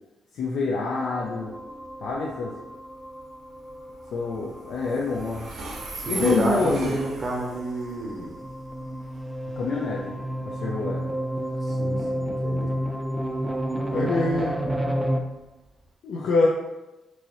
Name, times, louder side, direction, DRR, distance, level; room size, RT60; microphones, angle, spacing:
voice 1, 0.3-1.5 2.0-2.5 4.1-5.5 6.1-7.0 9.6-10.1 10.5-11.0 13.9-14.6 16.0-16.5, left 3 dB, 75° left, -4 dB, 0.6 m, -26 dB
sound 1, 1.0-15.2, equal, 5° right, 0.3 m, -31 dB
Train, 1.4-15.9, right 2 dB, 70° right, 0.9 m, -42 dB
voice 2, 5.9-8.3 11.7-12.8, right 1 dB, 35° right, -1 dB, 0.7 m, -29 dB
4.5 x 2.7 x 3.1 m, 1.0 s
cardioid pair, 145°, 0 cm